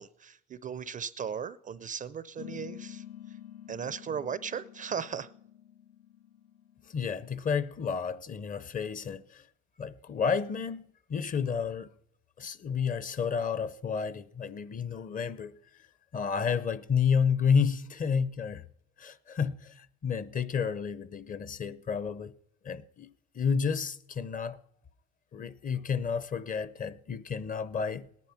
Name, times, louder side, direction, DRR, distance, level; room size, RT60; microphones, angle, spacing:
voice 1, 0.0-3.4 3.7-5.3, right 7 dB, 25° right, 0.4 m, -37 dB
sound 1, 2.4-7.3, left 11 dB, 85° left, 0.8 m, -48 dB
voice 2, 6.9-9.4 9.8-10.8 11.1-11.9 12.4-15.6 16.1-18.6 19.0-22.3 22.6-24.6 25.3-28.1, left 6 dB, 25° left, 0.6 m, -31 dB
18.0 x 11.0 x 5.7 m
cardioid pair, 120°, 30 cm